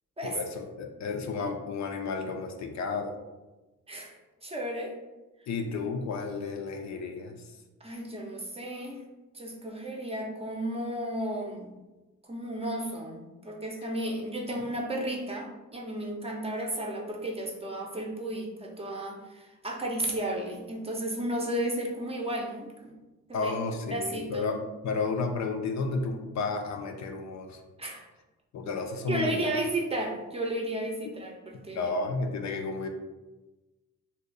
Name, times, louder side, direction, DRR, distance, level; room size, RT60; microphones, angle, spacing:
voice 1, 0.2-3.2 5.5-7.5 23.3-27.6 28.5-29.5 31.7-32.9, left 4 dB, 55° left, 4 dB, 0.5 m, -32 dB
voice 2, 3.9-4.9 7.8-9.0 9.3-11.7 12.3-23.0 23.3-23.5 23.9-24.5 27.8-28.1 29.1-31.9, right 1 dB, 20° right, 0 dB, 0.6 m, -33 dB
2.7 x 2.5 x 3.8 m, 1.1 s
cardioid pair, 95°, 33 cm